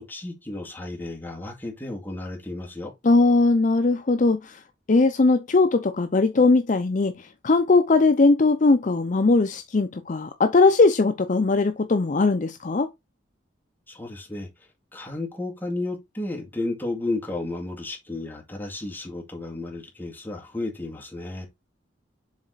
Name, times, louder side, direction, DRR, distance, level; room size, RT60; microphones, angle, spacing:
voice 1, 0.0-2.9 13.9-14.5 14.9-21.5, left 2 dB, 10° left, 2.1 m, -33 dB
voice 2, 3.0-4.6 4.9-12.9, left 3 dB, 40° left, 0.5 m, -20 dB
7.3 x 4.1 x 3.9 m
head